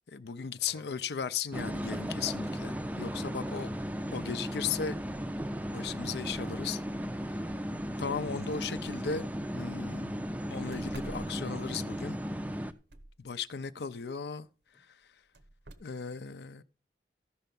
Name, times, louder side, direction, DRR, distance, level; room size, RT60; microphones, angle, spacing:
voice 1, 0.1-3.7 4.1-5.0 5.7-6.8 7.2-7.4 8.0-9.3 9.5-10.2 10.5-12.2 13.2-14.5 14.8-14.9 15.8-16.6, left 6 dB, 75° left, 0.5 m, -36 dB
sound 1, 1.5-12.7, equal, 10° right, 0.4 m, -36 dB
voice 2, 3.1-4.0 4.5-5.9 14.7-14.8, left 2 dB, 20° left, 0.8 m, -58 dB
sound 2, 9.2-9.3 9.6-9.7 10.1-10.2 10.7-11.9 12.5-13.3 15.3-15.7, right 1 dB, 80° right, 0.9 m, -48 dB
14.0 x 5.7 x 5.3 m
head